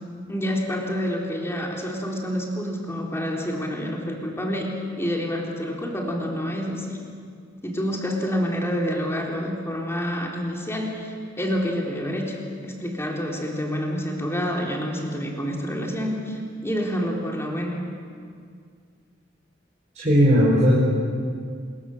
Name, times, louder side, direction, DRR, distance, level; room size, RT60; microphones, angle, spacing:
voice 1, 0.3-7.0 7.6-17.8, equal, 15° left, -1 dB, 3.9 m, -28 dB
voice 2, 19.9-20.8, equal, 40° right, -6 dB, 4.9 m, -17 dB
25.5 x 22.0 x 7.3 m, 2.2 s
head